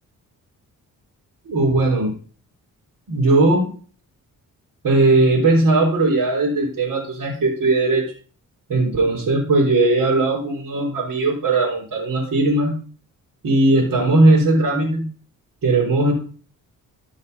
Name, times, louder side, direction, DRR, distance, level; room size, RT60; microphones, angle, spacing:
voice 1, 1.5-2.1 3.1-3.7 4.8-8.1 8.7-12.8 13.4-15.1 15.6-16.1, right 2 dB, 65° right, -4 dB, 3.8 m, -18 dB
14.5 x 5.6 x 5.4 m, 0.41 s
cardioid pair, 75°, 35 cm